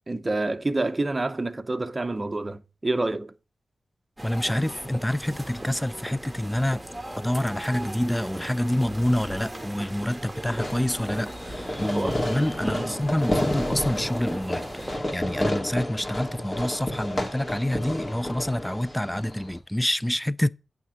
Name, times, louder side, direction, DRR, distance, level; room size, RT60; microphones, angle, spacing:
voice 1, 0.1-3.3 11.9-12.2 12.6-13.0, right 2 dB, 30° right, 0.7 m, -28 dB
voice 2, 4.2-6.8 7.2-20.5, left 1 dB, 10° left, 0.4 m, -27 dB
sound 1, 4.2-15.0, right 1 dB, 10° right, 1.6 m, -38 dB
Fireworks, 10.6-19.6, left 1 dB, 35° left, 2.4 m, -31 dB
9.0 x 3.6 x 6.3 m
cardioid pair, 55°, 0 cm